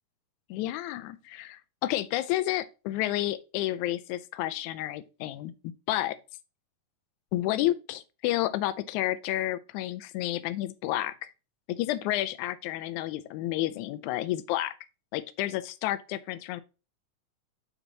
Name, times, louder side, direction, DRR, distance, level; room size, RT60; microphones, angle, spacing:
voice 1, 0.5-6.2 7.3-11.3 11.7-14.7 15.1-16.6, left 15 dB, 80° left, 1.7 m, -31 dB
6.8 x 4.5 x 4.0 m
omnidirectional pair, 3.9 m